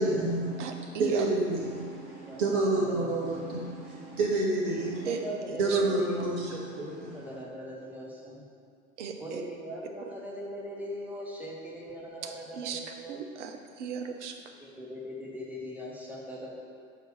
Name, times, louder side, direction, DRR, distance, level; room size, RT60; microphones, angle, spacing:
voice 1, 0.0-5.3 5.6-7.4, right 2 dB, 45° right, -3 dB, 1.7 m, -29 dB
voice 2, 0.6-1.3 5.0-5.8 9.0-9.4 10.0-10.1 12.2-12.8 13.1-14.4, right 6 dB, 60° right, 5 dB, 0.8 m, -37 dB
voice 3, 5.1-6.2 7.1-8.4 9.2-13.2 14.6-16.6, equal, 5° right, -4 dB, 1.0 m, -40 dB
5.1 x 4.6 x 6.1 m, 2.3 s
figure-of-eight pair, 85°, 41 cm